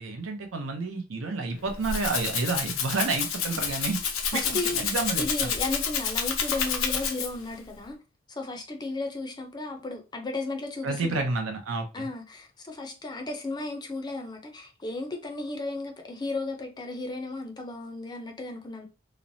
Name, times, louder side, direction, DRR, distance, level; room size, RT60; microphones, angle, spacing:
voice 1, 0.0-4.0 4.3-5.5 10.8-12.1, right 3 dB, 80° right, 0.7 m, -30 dB
Rattle (instrument), 1.6-7.5, left 7 dB, 90° left, 0.5 m, -29 dB
voice 2, 4.3-4.8 5.2-8.0 8.3-11.3 11.9-18.9, left 2 dB, 20° left, 0.5 m, -34 dB
3.0 x 2.0 x 2.6 m
head